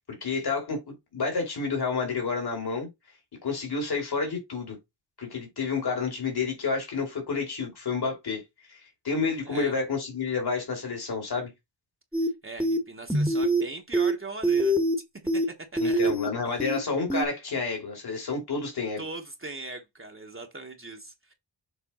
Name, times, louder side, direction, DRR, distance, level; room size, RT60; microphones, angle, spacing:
voice 1, 0.2-2.9 3.4-4.8 5.2-8.4 8.7-8.8 9.0-11.5 15.8-19.0, left 4 dB, 60° left, 2.8 m, -29 dB
voice 2, 9.4-9.8 12.2-14.8 15.3-15.4 15.7-16.0 16.4-16.6 19.0-21.3, right 2 dB, 30° right, 1.1 m, -40 dB
sound 1, 12.1-12.3 12.6-12.8 13.1-13.6 13.9-14.1 14.4-14.9 15.3-15.4 15.8-16.3 16.6-16.8 17.1-17.2, right 1 dB, 5° right, 1.2 m, -24 dB
7.1 x 3.5 x 4.2 m
wide cardioid pair, 95°, 44 cm